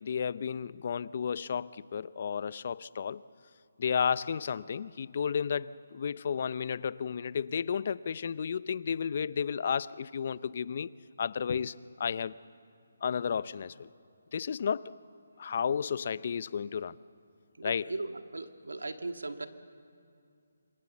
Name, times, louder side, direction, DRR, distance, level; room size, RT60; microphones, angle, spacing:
voice 1, 0.0-3.2 3.8-10.9 11.2-12.4 13.0-13.9 14.3-14.9 15.4-17.0 17.6-17.8, left 7 dB, 45° left, 18 dB, 0.6 m, -32 dB
voice 2, 17.6-19.5, right 3 dB, 90° right, 7 dB, 1.9 m, -38 dB
26.5 x 24.5 x 7.2 m, 2.4 s
hypercardioid pair, 160°, 0 cm